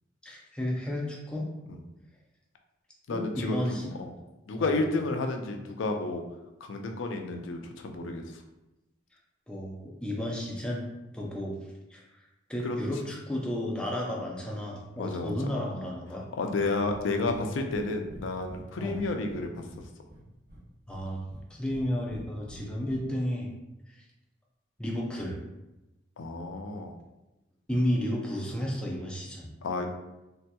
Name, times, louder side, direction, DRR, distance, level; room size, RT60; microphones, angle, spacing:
voice 1, 0.2-1.5 3.1-3.9 4.5-4.7 9.5-10.8 11.1-11.6 11.9-12.2 12.5-16.2 18.8-19.0 20.9-21.2 21.5-23.5 23.9-24.0 24.8-25.4 27.7-29.5, left 1 dB, 5° left, -3 dB, 0.4 m, -32 dB
voice 2, 3.1-4.1 4.5-6.2 6.6-8.4 12.6-12.8 15.0-15.3 16.4-19.9 22.7-22.8 26.2-27.0 29.6-29.9, left 3 dB, 80° left, 4 dB, 0.4 m, -31 dB
Breathing, 16.8-17.0 17.3-17.4 17.7-17.8 18.1-19.4 19.7-20.6 20.9-21.8 22.1-23.0, equal, 50° right, 0.7 m, -47 dB
3.2 x 2.8 x 2.2 m, 0.98 s
head